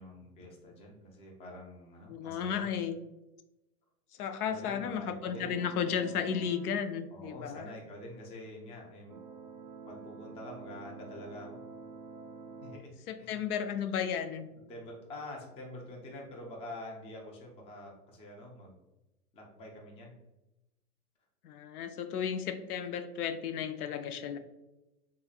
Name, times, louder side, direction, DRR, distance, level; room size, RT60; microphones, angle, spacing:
voice 1, 0.0-2.7 4.5-5.5 7.1-9.1 9.9-11.6 12.6-12.9 13.2-13.4 14.7-18.8 19.3-20.2, left 1 dB, 15° left, 0 dB, 0.4 m, -46 dB
voice 2, 2.1-3.0 4.2-7.7 13.1-14.5 21.4-24.4, left 7 dB, 75° left, 8 dB, 0.5 m, -34 dB
sound 1, 5.3-6.8 9.1-12.8, right 4 dB, 40° right, 0.5 m, -48 dB
3.6 x 3.0 x 2.3 m, 0.99 s
hypercardioid pair, 110°, 45 cm